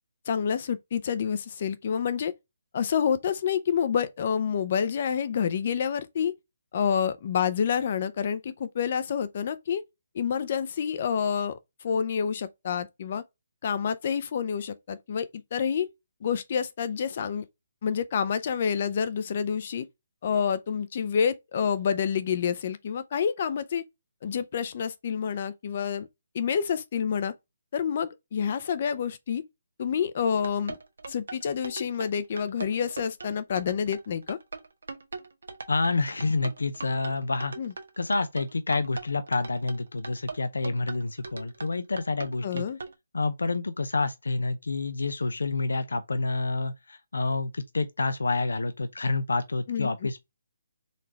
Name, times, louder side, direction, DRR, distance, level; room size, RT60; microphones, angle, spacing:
voice 1, 0.3-2.3 2.7-6.3 6.7-9.8 10.1-11.6 11.8-13.2 13.6-15.9 16.2-17.4 17.8-19.9 20.2-23.8 24.2-26.1 26.3-27.3 27.7-29.4 29.8-30.8 31.1-34.4 37.6-37.7 42.4-42.8 49.7-50.1, left 7 dB, 45° left, 0.6 m, -28 dB
sound 1, 30.2-42.9, right 3 dB, 75° right, 1.0 m, -40 dB
voice 2, 35.7-37.5 38.0-42.7 43.1-50.2, left 3 dB, 85° left, 0.6 m, -28 dB
4.0 x 3.3 x 3.1 m
hypercardioid pair, 155°, 0 cm